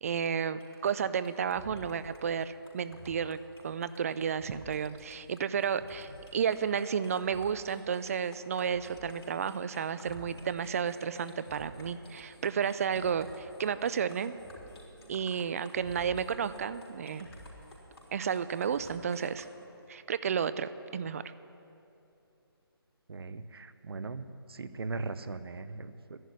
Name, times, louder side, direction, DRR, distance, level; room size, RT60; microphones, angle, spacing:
voice 1, 0.0-3.4 3.6-14.4 15.1-17.3 18.1-19.5 19.9-21.2, right 7 dB, 35° right, 14 dB, 0.5 m, -32 dB
sound 1, 0.6-19.5, left 1 dB, 75° left, 4.0 m, -51 dB
voice 2, 23.1-26.2, right 3 dB, 70° right, 12 dB, 0.8 m, -39 dB
11.0 x 11.0 x 9.6 m, 2.8 s
figure-of-eight pair, 160°, 13 cm